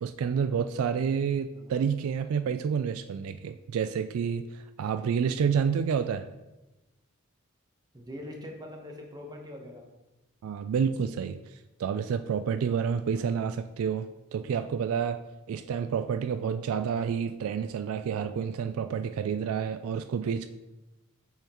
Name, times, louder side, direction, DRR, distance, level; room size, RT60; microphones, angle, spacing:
voice 1, 0.0-6.3 10.4-15.2 15.5-20.5, right 7 dB, 75° right, 11 dB, 0.3 m, -29 dB
voice 2, 1.5-1.9 7.9-9.9 13.1-13.5, left 1 dB, 20° right, 1 dB, 1.0 m, -43 dB
7.0 x 5.7 x 3.0 m, 1.0 s
head